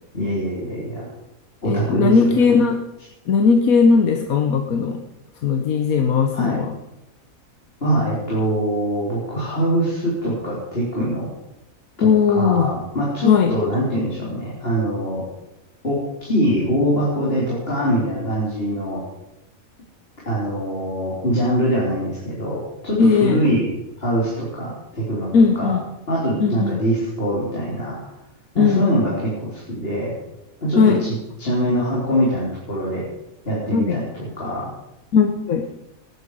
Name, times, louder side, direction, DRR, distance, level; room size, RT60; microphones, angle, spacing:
voice 1, 0.1-1.1 1.6-2.3 6.3-6.6 7.8-11.3 12.0-15.2 15.8-19.0 20.3-23.7 24.0-25.3 25.6-25.7 26.1-28.0 28.5-30.1 30.6-33.0 33.4-34.0 34.4-34.7, equal, 40° left, -6 dB, 4.2 m, -23 dB
voice 2, 1.6-2.9 3.3-5.0 5.4-6.8 12.0-12.7 13.2-13.5 23.0-23.4 25.3-25.8 26.4-26.8 28.6-28.9 30.8-31.0 33.7-34.0 35.1-35.7, left 5 dB, 80° left, 6 dB, 1.4 m, -17 dB
18.5 x 11.0 x 5.0 m, 0.88 s
omnidirectional pair, 1.5 m